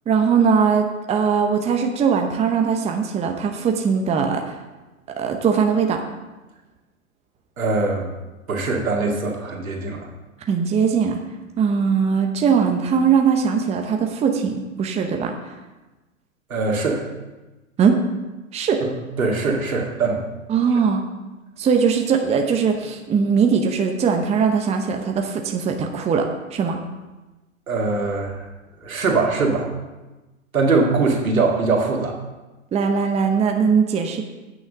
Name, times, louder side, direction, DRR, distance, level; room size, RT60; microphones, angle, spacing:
voice 1, 0.1-4.5 5.2-6.0 10.5-11.2 11.6-15.3 17.8-18.0 18.5-18.8 20.5-21.0 21.6-26.8 32.7-34.2, right 6 dB, 15° right, 4 dB, 0.9 m, -20 dB
voice 2, 7.6-8.1 8.5-10.0 16.5-17.0 19.2-20.2 27.7-28.5 28.8-29.7 30.5-32.2, right 3 dB, 80° right, 0 dB, 2.4 m, -21 dB
9.0 x 6.5 x 6.7 m, 1.1 s
figure-of-eight pair, 110°, 41 cm